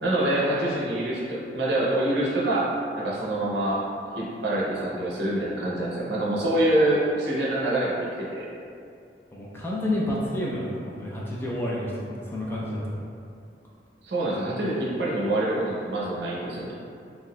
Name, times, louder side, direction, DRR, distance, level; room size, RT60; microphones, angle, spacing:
voice 1, 0.0-2.7 3.0-3.8 4.1-8.5 14.0-16.7, right 1 dB, 70° right, -5 dB, 0.6 m, -25 dB
voice 2, 9.3-12.9, left 1 dB, 15° left, -6 dB, 0.4 m, -29 dB
3.7 x 2.5 x 2.2 m, 2.5 s
head